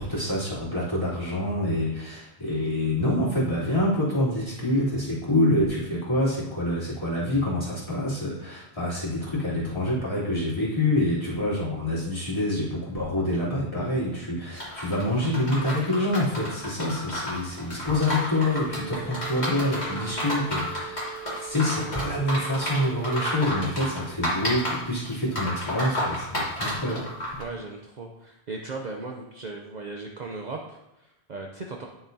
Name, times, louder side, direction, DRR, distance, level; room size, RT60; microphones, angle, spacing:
voice 1, 0.0-27.0, left 1 dB, 25° left, -9 dB, 3.4 m, -26 dB
sound 1, 14.6-27.4, left 1 dB, 40° left, 2.9 m, -31 dB
sound 2, 18.5-23.5, right 12 dB, 70° left, 1.3 m, -42 dB
voice 2, 27.4-31.9, right 3 dB, 45° right, 1 dB, 0.7 m, -37 dB
10.0 x 7.1 x 2.7 m, 0.92 s
omnidirectional pair, 1.1 m